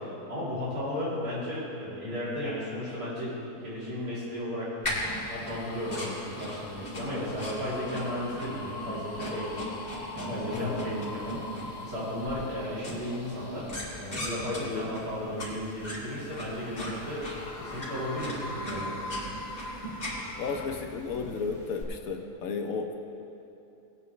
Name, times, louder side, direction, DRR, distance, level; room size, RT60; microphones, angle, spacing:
voice 1, 0.0-4.7 5.3-9.7 10.1-17.3 17.6-19.0, left 1 dB, 70° right, -9 dB, 3.9 m, -34 dB
sound 1, 4.8-21.8, equal, 35° left, 2.4 m, -39 dB
sound 2, 5.0-14.9 15.4-20.7, left 2 dB, 90° left, 1.8 m, -43 dB
voice 2, 10.5-10.9 14.6-14.9 20.4-22.9, left 5 dB, 65° left, 4 dB, 1.3 m, -33 dB
18.5 x 8.7 x 3.3 m, 2.8 s
omnidirectional pair, 1.7 m